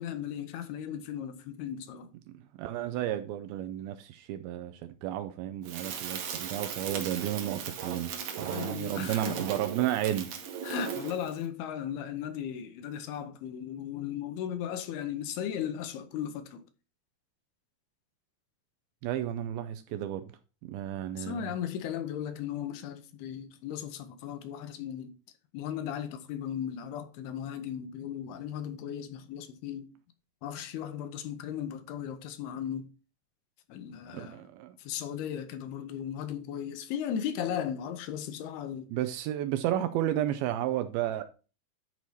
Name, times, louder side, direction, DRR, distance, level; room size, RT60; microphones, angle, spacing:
voice 1, 0.0-2.1 8.4-9.5 10.6-16.6 21.2-25.1 25.5-29.9 30.4-32.8 33.7-34.4 34.8-38.9, left 9 dB, 80° left, 2.8 m, -36 dB
voice 2, 2.6-10.3 19.0-20.2 20.6-21.5 34.1-34.8 38.9-41.2, right 12 dB, 80° right, 2.3 m, -32 dB
Crackle, 5.6-11.3, right 7 dB, 60° right, 2.3 m, -38 dB
10.5 x 4.7 x 4.1 m
omnidirectional pair, 4.6 m